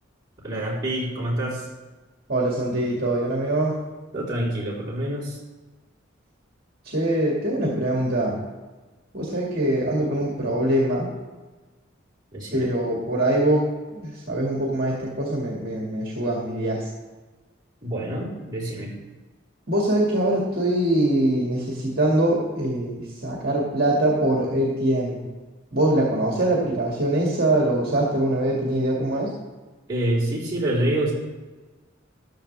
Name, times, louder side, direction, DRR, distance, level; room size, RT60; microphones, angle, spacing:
voice 1, 0.4-1.7 4.1-5.4 12.3-12.7 17.8-18.9 29.9-31.1, right 1 dB, 20° right, -9 dB, 4.0 m, -26 dB
voice 2, 2.3-3.8 6.8-8.3 9.1-11.1 12.5-16.9 19.7-25.2 25.7-29.3, right 1 dB, 50° right, -3 dB, 2.2 m, -23 dB
14.0 x 12.0 x 3.4 m, 1.2 s
head